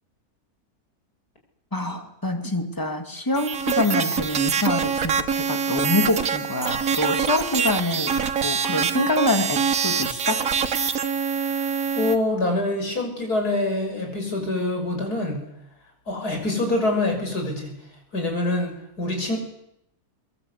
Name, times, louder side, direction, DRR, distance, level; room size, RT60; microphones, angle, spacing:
voice 1, 1.7-8.2 8.4-10.4, left 2 dB, 15° left, 6 dB, 2.3 m, -26 dB
sound 1, 3.3-12.2, right 6 dB, 60° right, 1.7 m, -24 dB
voice 2, 11.9-15.4 16.1-17.7 18.1-19.4, left 2 dB, 80° left, 3 dB, 6.8 m, -25 dB
24.0 x 22.5 x 8.2 m, 0.80 s
omnidirectional pair, 1.6 m